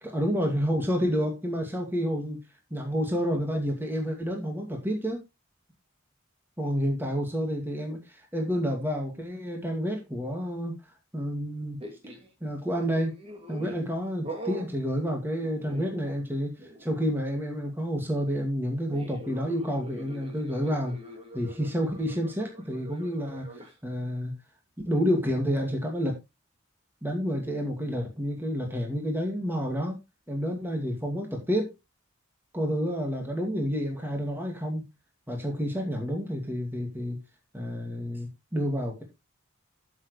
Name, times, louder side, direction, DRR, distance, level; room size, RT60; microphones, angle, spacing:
voice 1, 0.0-2.4 2.7-5.2 6.6-10.8 11.1-11.8 12.4-13.1 13.5-20.9 21.3-24.3 24.9-26.2 27.0-30.0 30.3-31.7 32.5-34.8 35.3-37.2 37.5-39.0, equal, 10° right, 1 dB, 2.2 m, -29 dB
sound 1, 11.8-12.3 12.7-13.9 14.2-14.7 15.4-16.3 16.6-16.9 18.9-23.7, right 2 dB, 30° right, 2.4 m, -43 dB
13.5 x 6.6 x 3.2 m, 0.23 s
head